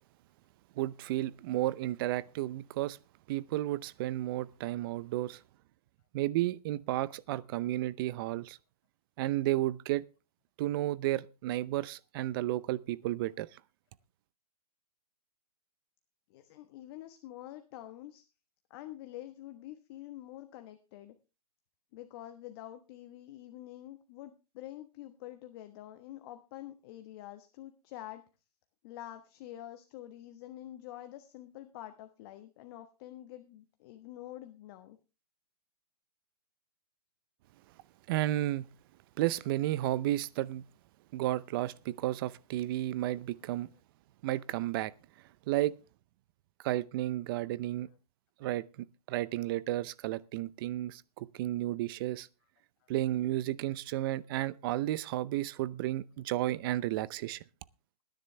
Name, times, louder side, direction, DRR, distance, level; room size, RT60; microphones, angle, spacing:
voice 1, 0.8-3.0 3.3-5.4 6.1-8.6 9.2-10.0 10.6-13.5 38.1-38.7 39.2-40.6 41.1-43.7 44.2-44.9 45.5-45.7 46.6-47.9 48.4-52.3 52.9-57.4, right 15 dB, 35° right, 0.6 m, -32 dB
voice 2, 16.3-18.2 18.7-21.1 21.9-28.2 28.8-35.0 52.8-52.9, left 13 dB, 40° left, 1.3 m, -47 dB
20.0 x 10.5 x 3.3 m
hypercardioid pair, 145°, 20 cm